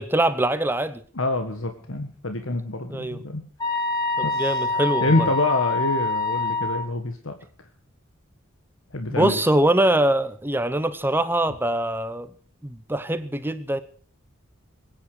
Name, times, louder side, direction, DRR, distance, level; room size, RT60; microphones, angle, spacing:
voice 1, 0.0-1.0 2.9-3.2 4.4-5.3 9.1-12.3 12.6-13.8, right 1 dB, 10° right, 12 dB, 0.8 m, -23 dB
voice 2, 1.1-3.4 4.2-4.6 5.0-7.3 8.9-9.4, left 2 dB, 70° left, 6 dB, 1.7 m, -26 dB
sound 1, 3.6-6.9, left 3 dB, 20° left, 4.4 m, -25 dB
21.5 x 10.0 x 6.3 m, 0.42 s
head